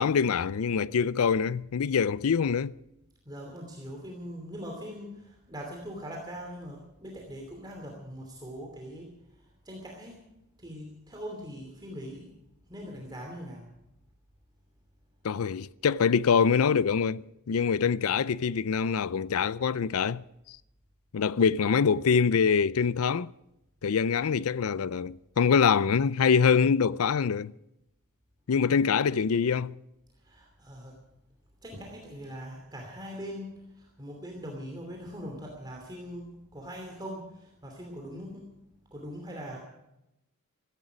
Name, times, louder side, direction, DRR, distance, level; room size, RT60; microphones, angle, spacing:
voice 1, 0.0-2.7 15.2-20.2 21.1-23.3 23.8-27.5 28.5-29.7, left 6 dB, 70° left, 0.5 m, -24 dB
voice 2, 3.3-9.1 9.6-10.2 10.6-12.3 12.7-13.7 30.2-30.9 31.6-38.5 38.9-39.6, equal, 20° right, 2.9 m, -41 dB
16.5 x 15.0 x 5.1 m
head